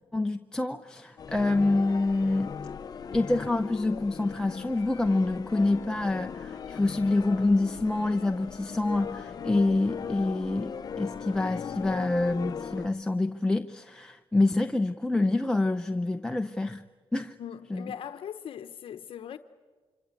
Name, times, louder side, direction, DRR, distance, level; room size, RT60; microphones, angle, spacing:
voice 1, 0.1-2.6 3.1-16.8 17.1-17.3 17.7-17.9, left 2 dB, 5° left, 0.8 m, -27 dB
sound 1, 1.2-12.9, left 6 dB, 40° left, 0.8 m, -38 dB
voice 2, 17.4-19.4, left 9 dB, 65° left, 0.9 m, -40 dB
26.5 x 25.5 x 8.3 m
cardioid pair, 130°, 10 cm